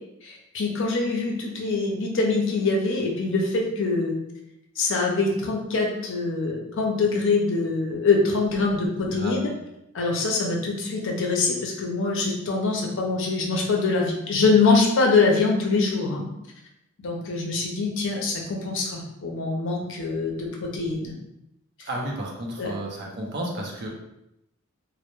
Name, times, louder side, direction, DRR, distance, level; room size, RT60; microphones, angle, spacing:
voice 1, 0.2-4.1 4.8-9.5 9.9-16.3 17.0-21.1 22.6-22.7, left 3 dB, 60° left, 0 dB, 0.5 m, -24 dB
voice 2, 9.1-9.5 21.8-23.9, right 1 dB, 50° right, -1 dB, 0.5 m, -32 dB
2.1 x 2.0 x 2.9 m, 0.85 s
head